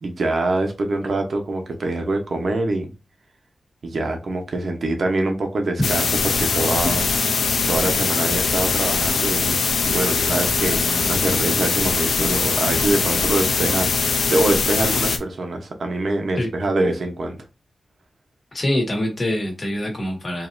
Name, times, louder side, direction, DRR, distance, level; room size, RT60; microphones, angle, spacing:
voice 1, 0.0-2.9 3.8-7.1 7.3-17.4, right 2 dB, 60° right, 0.9 m, -24 dB
sound 1, 5.8-15.2, left 4 dB, 85° left, 0.6 m, -21 dB
voice 2, 18.5-20.5, left 1 dB, 35° left, 1.6 m, -24 dB
4.9 x 2.7 x 2.6 m
wide cardioid pair, 145°, 0 cm